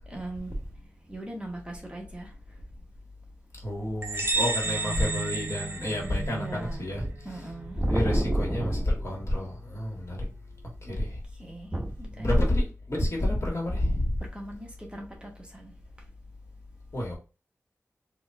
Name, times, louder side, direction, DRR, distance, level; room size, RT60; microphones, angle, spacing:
voice 1, 0.1-2.6 4.2-4.4 6.0-8.9 10.8-11.1 11.3-12.3 14.2-15.7, right 1 dB, 20° right, 0.9 m, -34 dB
voice 2, 3.6-7.4 7.9-10.3 10.8-11.2 12.1-14.2 16.9-17.2, left 1 dB, 55° left, 1.5 m, -29 dB
sound 1, 4.0-6.6, right 3 dB, 45° right, 0.8 m, -31 dB
sound 2, 4.6-10.9, right 5 dB, 75° right, 0.5 m, -42 dB
4.1 x 2.6 x 2.3 m
wide cardioid pair, 75°, 6 cm